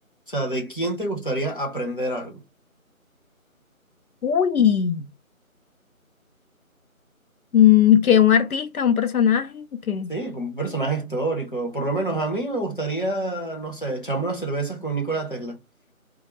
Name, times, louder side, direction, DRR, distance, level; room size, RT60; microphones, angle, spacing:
voice 1, 0.3-2.4 10.1-15.6, right 2 dB, 40° left, 0.7 m, -27 dB
voice 2, 4.2-5.1 7.5-10.1, left 9 dB, 85° left, 0.6 m, -18 dB
2.2 x 2.0 x 3.0 m
figure-of-eight pair, 175°, 42 cm